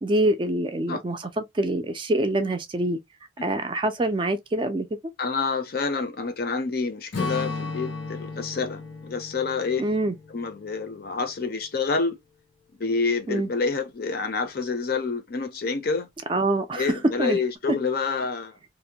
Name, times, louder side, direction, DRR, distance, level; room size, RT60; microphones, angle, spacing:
voice 1, 0.0-3.0 3.4-4.9 9.8-10.1 13.3-13.5 16.3-17.4, right 1 dB, 25° right, 0.3 m, -25 dB
voice 2, 5.2-9.9 10.3-12.2 12.8-16.1 16.8-18.5, left 4 dB, 50° left, 0.5 m, -28 dB
Strum, 7.1-11.8, left 3 dB, 85° left, 0.9 m, -35 dB
2.6 x 2.1 x 2.7 m
head